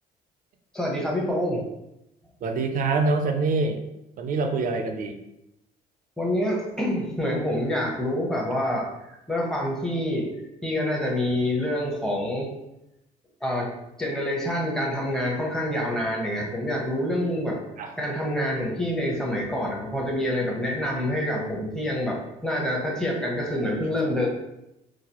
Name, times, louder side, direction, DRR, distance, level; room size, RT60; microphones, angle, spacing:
voice 1, 0.7-1.6 6.2-8.9 9.3-10.3 10.6-12.5 13.4-13.7 14.0-17.6 18.0-24.3, left 1 dB, 5° left, -3 dB, 0.9 m, -27 dB
voice 2, 2.4-3.8 4.2-5.2 17.8-17.9, right 3 dB, 55° right, 5 dB, 0.5 m, -25 dB
4.0 x 2.4 x 2.9 m, 0.88 s
cardioid pair, 110°, 17 cm